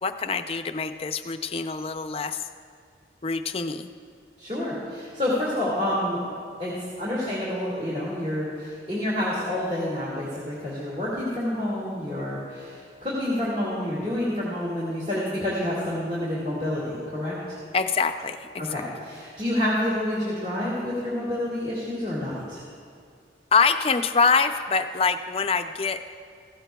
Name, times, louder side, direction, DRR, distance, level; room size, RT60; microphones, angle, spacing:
voice 1, 0.0-2.4 3.2-3.9 17.7-18.8 23.5-26.0, left 5 dB, 30° left, 8 dB, 0.4 m, -25 dB
voice 2, 4.4-6.2 6.6-17.6 18.6-22.6, left 1 dB, 35° right, -8 dB, 2.1 m, -28 dB
15.5 x 15.0 x 2.3 m, 2.3 s
head